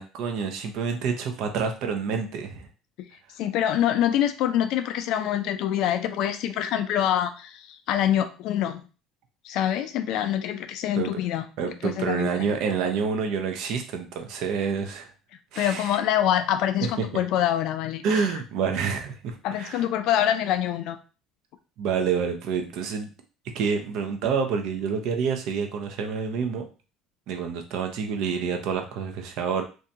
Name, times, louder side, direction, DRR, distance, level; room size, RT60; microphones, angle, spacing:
voice 1, 0.0-2.7 11.0-11.2 11.6-15.1 15.5-16.0 16.8-17.1 18.0-19.9 21.8-23.1 23.5-26.7 27.3-29.6, right 6 dB, 65° right, 5 dB, 0.6 m, -28 dB
voice 2, 3.4-8.8 9.4-11.4 11.8-12.3 15.6-18.3 19.4-21.0, left 11 dB, 65° left, 10 dB, 0.3 m, -25 dB
2.7 x 2.2 x 2.7 m, 0.34 s
cardioid pair, 125°, 0 cm